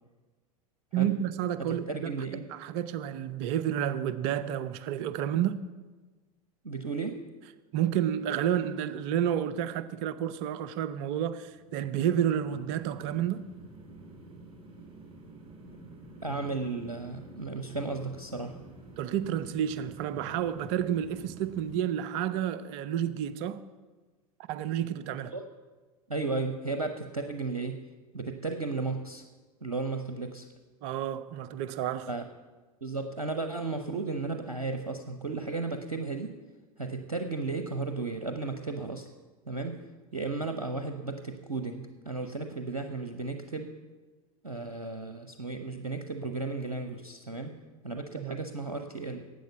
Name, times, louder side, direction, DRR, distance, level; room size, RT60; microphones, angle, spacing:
voice 1, 0.9-2.1 2.5-5.6 7.7-13.4 19.0-23.6 24.5-25.3 30.8-32.1 48.2-48.4, right 10 dB, 45° right, 0.7 m, -30 dB
voice 2, 1.6-2.4 6.6-7.2 16.2-18.6 25.2-25.4 26.1-27.8 28.1-29.2 29.6-30.5 32.1-32.3 32.8-36.3 36.8-39.1 39.5-39.8 40.1-43.7 44.4-47.5 47.8-49.2, right 3 dB, 85° right, 0.8 m, -34 dB
sound 1, 11.4-21.8, right 2 dB, 30° right, 3.2 m, -50 dB
11.5 x 8.3 x 6.8 m
figure-of-eight pair, 80°, 19 cm